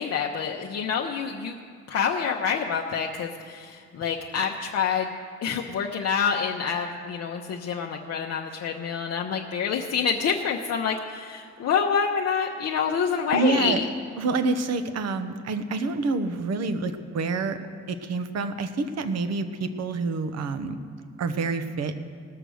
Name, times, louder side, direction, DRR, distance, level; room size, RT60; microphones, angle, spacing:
voice 1, 0.0-1.5 1.9-5.1 5.4-13.8, left 6 dB, 55° left, 1 dB, 0.8 m, -27 dB
voice 2, 13.3-13.8 14.2-17.6 17.9-20.8 21.2-21.9, right 3 dB, 60° right, 10 dB, 0.9 m, -27 dB
18.5 x 6.8 x 6.3 m, 2.1 s
cardioid pair, 115°, 30 cm